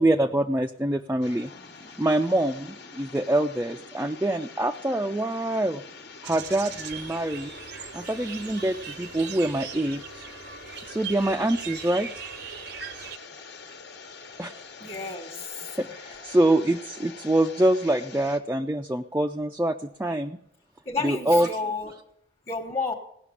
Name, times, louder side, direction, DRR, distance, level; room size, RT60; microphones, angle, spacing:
voice 1, 0.0-1.5 2.0-5.8 6.2-7.5 7.9-10.3 10.9-12.1 14.4-14.6 15.8-20.4 21.0-21.5, right 1 dB, 10° right, 3 dB, 0.5 m, -25 dB
sound 1, 1.2-18.4, left 4 dB, 60° left, 1.3 m, -45 dB
sound 2, 6.2-13.2, right 8 dB, 60° right, 0.8 m, -40 dB
voice 2, 14.8-15.7 20.8-21.9 22.5-22.9, left 4 dB, 30° left, 0 dB, 1.4 m, -31 dB
17.5 x 6.0 x 9.7 m, 0.73 s
head